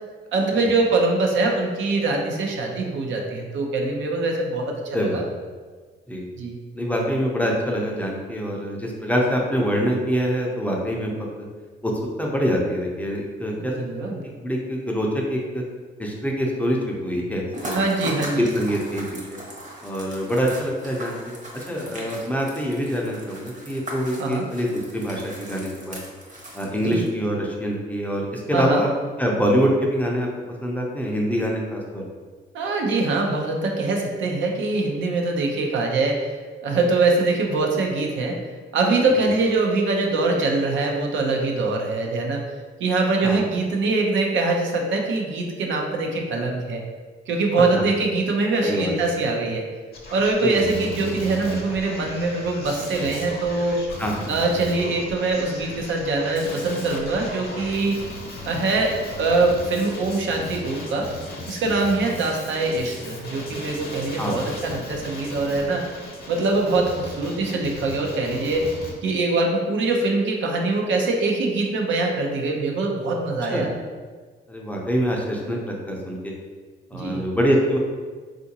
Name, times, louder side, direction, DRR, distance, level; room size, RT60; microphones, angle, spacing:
voice 1, 0.3-5.2 6.4-6.6 13.5-14.2 17.7-18.5 24.2-24.4 26.8-27.0 28.5-28.8 32.5-36.4 36.6-38.4 38.7-42.4 42.8-46.8 47.3-49.6 50.1-53.8 54.3-58.0 58.5-61.1 61.5-65.8 66.3-68.7 69.0-73.7 76.9-77.2, right 3 dB, 70° right, 1 dB, 0.6 m, -23 dB
voice 2, 4.9-5.2 6.1-6.3 6.7-11.2 11.8-11.9 12.2-13.7 14.4-15.6 16.0-17.7 18.5-19.0 19.3-19.4 19.8-26.0 26.5-28.9 29.2-30.3 30.6-32.0 39.2-39.3 43.2-43.4 48.6-48.9 50.4-50.6 54.0-54.3 64.2-64.5 73.5-73.7 74.5-76.3 76.9-77.8, equal, 10° left, -2 dB, 0.5 m, -25 dB
sound 1, 17.5-27.3, right 1 dB, 40° right, 1.0 m, -38 dB
Male speech man speaking, 49.9-68.9, left 2 dB, 50° left, 0.8 m, -37 dB
3.6 x 2.5 x 2.7 m, 1.5 s
cardioid pair, 90°, 20 cm